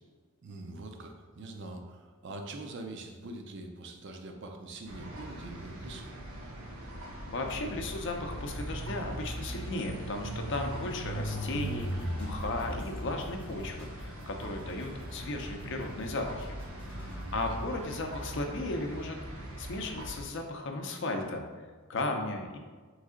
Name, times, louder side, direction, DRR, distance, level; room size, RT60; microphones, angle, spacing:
voice 1, 0.4-6.1 16.9-17.6, right 2 dB, 55° right, 4 dB, 0.4 m, -44 dB
sound 1, 4.9-20.2, right 1 dB, 80° right, 0.8 m, -39 dB
voice 2, 7.3-16.6 16.9-22.6, left 2 dB, 55° left, 3 dB, 0.5 m, -36 dB
sound 2, 11.4-19.2, left 1 dB, 5° left, 0.7 m, -53 dB
3.6 x 3.2 x 3.7 m, 1.5 s
head